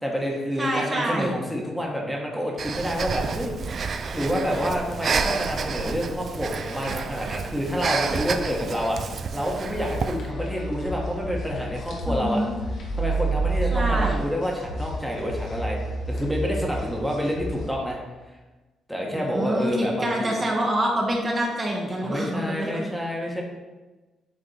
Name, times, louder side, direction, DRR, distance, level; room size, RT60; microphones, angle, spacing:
voice 1, 0.0-3.5 4.1-9.0 9.3-12.4 12.9-15.8 16.0-18.0 18.9-20.3 22.0-23.4, equal, ahead, -2 dB, 1.4 m, -28 dB
voice 2, 0.6-1.3 12.1-12.5 13.7-14.2 19.1-22.8, right 1 dB, 30° right, -1 dB, 1.3 m, -26 dB
Breathing, 2.6-10.3, right 5 dB, 50° right, 0.4 m, -30 dB
sound 1, 9.7-17.7, right 2 dB, 70° left, 1.3 m, -30 dB
8.1 x 3.4 x 4.3 m, 1.2 s
cardioid pair, 90°, 0 cm